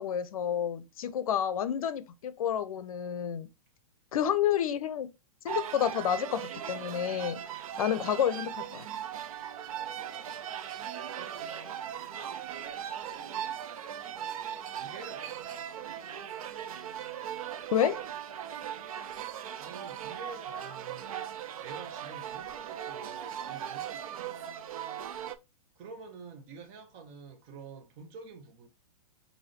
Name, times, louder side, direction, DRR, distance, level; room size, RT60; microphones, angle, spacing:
voice 1, 0.0-3.5 4.1-5.1 5.4-7.4 7.8-8.9 17.7-18.0, left 9 dB, 70° left, 0.6 m, -29 dB
sound 1, 5.5-25.4, right 9 dB, 65° right, 0.5 m, -39 dB
voice 2, 9.7-10.5 10.9-11.9 12.1-13.4 14.1-15.5 19.6-21.3 21.6-24.6 25.8-28.7, right 4 dB, 40° right, 1.0 m, -48 dB
4.8 x 2.7 x 2.8 m
hypercardioid pair, 115°, 19 cm